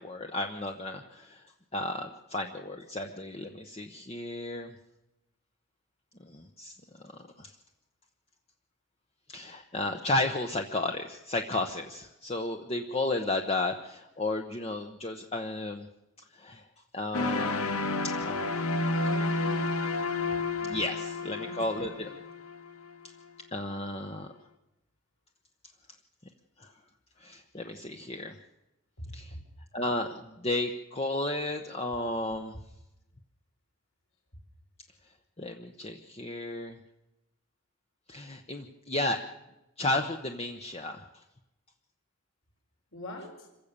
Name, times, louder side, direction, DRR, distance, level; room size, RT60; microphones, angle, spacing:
voice 1, 0.0-1.4 1.7-4.7 6.2-6.8 7.0-7.6 9.3-15.9 16.3-16.6 16.9-18.5 19.2-19.3 20.6-22.1 23.5-24.3 26.6-26.7 27.2-28.4 29.1-29.4 29.7-32.5 35.4-36.8 38.1-39.2 39.8-41.2, left 2 dB, 25° left, 4 dB, 1.0 m, -33 dB
sound 1, 17.1-23.1, left 2 dB, 90° left, 1.5 m, -31 dB
voice 2, 18.8-19.8 20.3-20.4 21.4-22.1 29.0-29.4 42.9-43.5, left 1 dB, 60° left, 3 dB, 4.7 m, -44 dB
26.5 x 16.0 x 6.8 m, 0.96 s
head